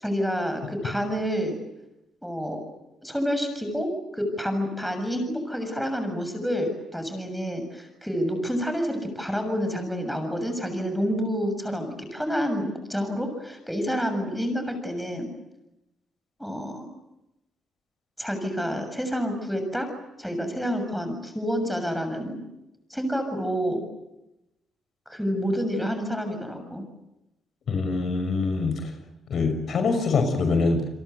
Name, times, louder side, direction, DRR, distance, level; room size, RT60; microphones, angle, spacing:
voice 1, 0.0-1.6 2.2-2.6 3.0-15.3 16.4-16.9 18.2-19.9 20.2-22.4 22.9-23.8 25.1-26.8, equal, ahead, 6 dB, 7.1 m, -28 dB
voice 2, 27.7-28.7 29.3-31.0, left 4 dB, 60° left, 7 dB, 6.2 m, -24 dB
29.5 x 23.0 x 8.2 m, 0.93 s
cardioid pair, 90°, 0 cm